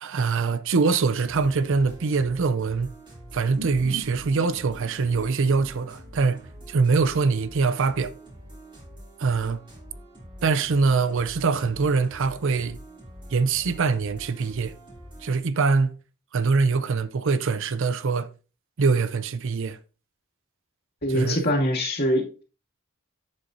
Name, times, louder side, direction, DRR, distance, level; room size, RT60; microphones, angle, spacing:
voice 1, 0.0-2.9 3.3-6.4 6.7-8.1 9.2-9.6 10.4-12.8 13.3-14.7 15.2-16.0 16.3-18.3 18.8-19.8 21.1-21.4, right 4 dB, 65° right, 0.5 m, -23 dB
sound 1, 1.1-15.4, right 1 dB, 25° right, 3.1 m, -45 dB
sound 2, 3.3-8.1, right 2 dB, 80° right, 2.4 m, -43 dB
voice 2, 21.0-22.4, equal, 50° left, 2.4 m, -23 dB
10.5 x 7.6 x 2.7 m
head